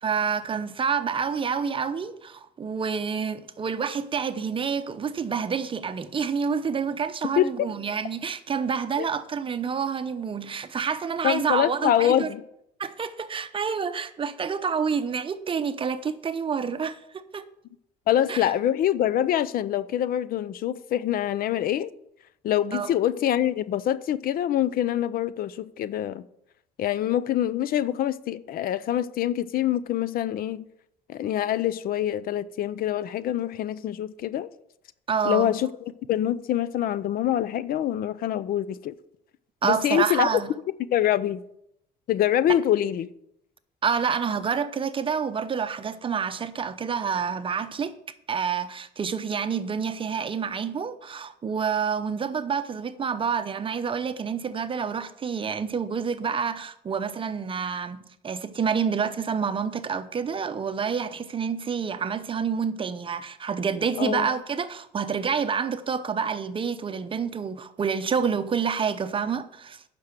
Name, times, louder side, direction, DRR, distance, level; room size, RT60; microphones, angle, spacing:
voice 1, 0.0-12.3 12.8-17.4 18.3-18.5 22.7-22.9 35.1-35.6 39.6-40.5 43.8-47.9 48.3-69.8, right 6 dB, 30° right, 0.7 m, -28 dB
voice 2, 11.2-12.4 18.1-21.9 22.4-26.3 26.8-30.6 31.1-34.5 35.2-35.7 36.1-38.9 39.6-40.3 40.9-41.4 42.1-43.1 64.0-64.3, left 11 dB, 60° left, 0.5 m, -25 dB
9.4 x 6.1 x 6.6 m
cardioid pair, 110°, 17 cm